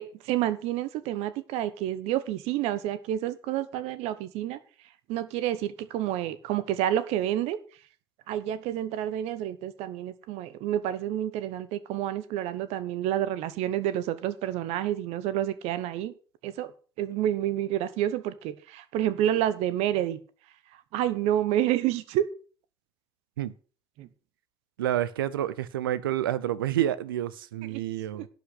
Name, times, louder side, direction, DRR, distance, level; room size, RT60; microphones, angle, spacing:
voice 1, 0.0-4.6 5.1-7.6 8.3-16.1 16.4-16.7 17.0-20.2 20.9-22.2 24.0-24.1 27.7-27.8 28.1-28.2, right 12 dB, 70° right, 1.1 m, -29 dB
voice 2, 24.8-28.3, right 12 dB, 90° right, 0.6 m, -29 dB
11.5 x 5.2 x 8.3 m
hypercardioid pair, 60°, 11 cm